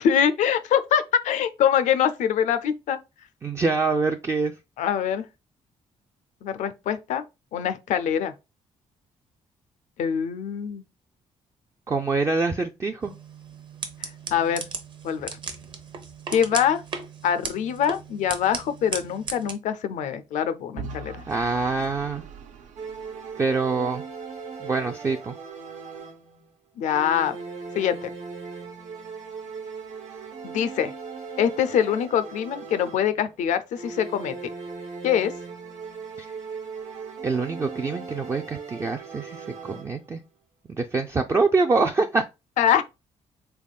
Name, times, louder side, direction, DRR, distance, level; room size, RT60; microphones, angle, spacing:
voice 1, 0.0-3.0 4.8-5.3 6.4-7.2 7.5-8.3 10.0-10.8 14.0-14.7 15.0-15.3 16.3-16.8 17.2-21.2 26.8-27.4 27.7-28.1 30.4-30.9 31.4-34.4 35.0-35.3 42.6-42.8, left 9 dB, 80° left, 0.5 m, -24 dB
voice 2, 3.4-4.5 11.9-13.1 21.3-22.2 23.4-24.0 24.6-25.3 37.2-40.2 40.7-42.2, right 4 dB, 25° right, 0.3 m, -25 dB
sound 1, 13.0-19.5, right 4 dB, 40° right, 0.7 m, -36 dB
Vehicle / Engine, 20.8-23.8, right 4 dB, 90° right, 0.6 m, -41 dB
sound 2, 22.8-26.5 26.9-33.3 33.7-40.2, right 5 dB, 70° right, 1.1 m, -38 dB
3.6 x 3.5 x 2.3 m
cardioid pair, 125°, 12 cm